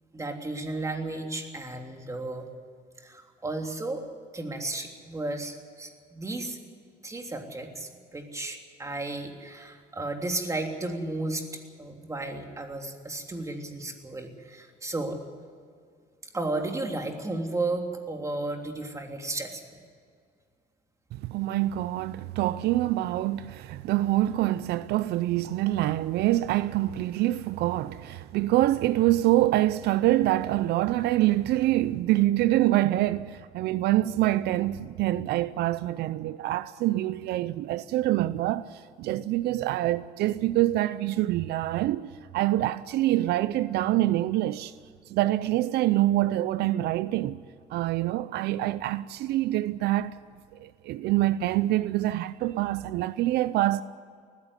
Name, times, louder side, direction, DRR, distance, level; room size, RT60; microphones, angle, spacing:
voice 1, 0.1-2.5 3.0-4.0 4.3-6.6 7.0-11.4 11.8-15.2 16.3-19.6, right 2 dB, 20° right, 3.2 m, -33 dB
voice 2, 21.2-44.7 45.1-47.4 47.7-50.1 50.6-53.8, right 15 dB, 80° right, 0.6 m, -25 dB
19.5 x 15.5 x 9.8 m
cardioid pair, 110°, 17 cm